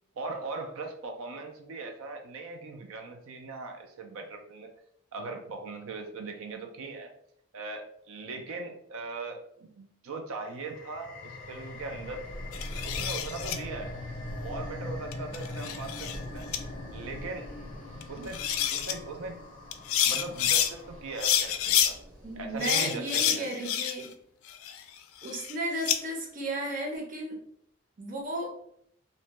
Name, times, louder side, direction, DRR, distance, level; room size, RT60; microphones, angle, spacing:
voice 1, 0.2-4.7 5.1-7.1 7.5-12.2 12.8-14.0 14.4-16.4 16.9-17.5 18.1-18.4 18.7-19.4 20.0-22.0 22.4-23.7, right 3 dB, 90° right, 4 dB, 0.4 m, -39 dB
sound 1, 10.5-21.6, left 2 dB, 40° left, 0.5 m, -43 dB
sound 2, 11.2-22.9, equal, 60° right, 1.2 m, -45 dB
sound 3, 12.5-13.6 15.1-16.2 16.5-16.6 18.0-18.1 18.3-18.9 19.7-20.7 21.2-21.9 22.6-24.1 24.5-26.0, left 10 dB, 90° left, 0.3 m, -28 dB
voice 2, 22.2-24.1 25.2-27.4 28.0-28.5, right 1 dB, 40° right, -1 dB, 0.6 m, -34 dB
2.6 x 2.1 x 2.9 m, 0.68 s
head